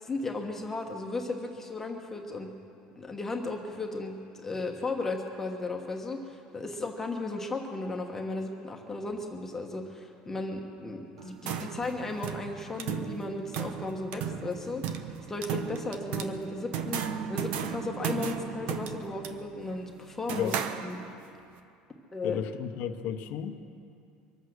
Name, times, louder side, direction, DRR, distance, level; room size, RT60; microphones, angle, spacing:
voice 1, 0.0-2.5 3.0-17.0 17.3-20.5 20.8-21.0 22.1-22.4, left 2 dB, 15° left, 1 dB, 1.3 m, -35 dB
sound 1, 11.2-21.3, right 8 dB, 65° right, 1.0 m, -36 dB
voice 2, 22.2-23.7, left 9 dB, 65° left, 7 dB, 0.9 m, -33 dB
24.0 x 8.2 x 6.4 m, 2.5 s
cardioid pair, 130°, 3 cm